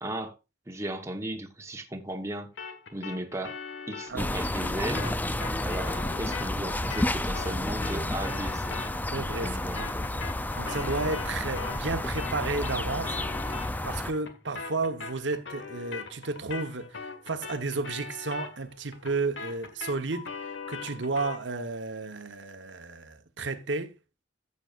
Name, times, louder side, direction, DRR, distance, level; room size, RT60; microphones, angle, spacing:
voice 1, 0.0-0.4 0.7-2.5 2.9-3.6 3.9-5.2 5.6-8.8 9.4-10.1, right 1 dB, 15° right, 1.1 m, -36 dB
sound 1, 2.6-11.9 12.2-21.5, left 5 dB, 85° left, 1.7 m, -41 dB
sound 2, 4.2-14.1, left 1 dB, 10° left, 0.5 m, -31 dB
voice 2, 9.1-10.0 10.6-13.2 13.8-20.3 20.7-23.9, right 3 dB, 80° right, 1.1 m, -32 dB
14.0 x 7.8 x 2.5 m
head